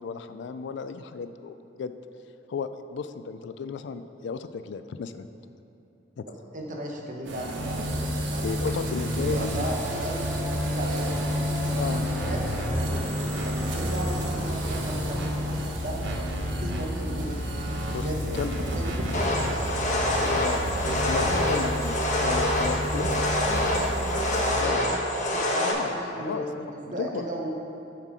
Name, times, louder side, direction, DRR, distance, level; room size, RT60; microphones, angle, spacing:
voice 1, 0.0-1.9 2.5-5.3 6.2-6.3 8.4-9.7 11.7-12.1 17.9-18.1 18.3-18.5 20.4-20.6 21.1-23.3 24.6-24.9 25.6-26.5 26.9-27.3, left 5 dB, 70° left, 11 dB, 0.3 m, -34 dB
voice 2, 6.3-11.4 11.9-13.2 13.4-16.0 16.4-17.4 17.9-19.8 20.1-20.5 20.7-20.9 21.2-21.6 22.9-25.0 25.3-27.5, right 1 dB, 45° right, 0 dB, 1.1 m, -36 dB
sound 1, 7.3-24.6, equal, 75° right, 0.9 m, -30 dB
sound 2, 9.6-15.6, equal, ahead, 0.8 m, -38 dB
sound 3, 19.1-25.7, left 1 dB, 45° left, 1.0 m, -26 dB
7.4 x 5.7 x 4.8 m, 2.8 s
head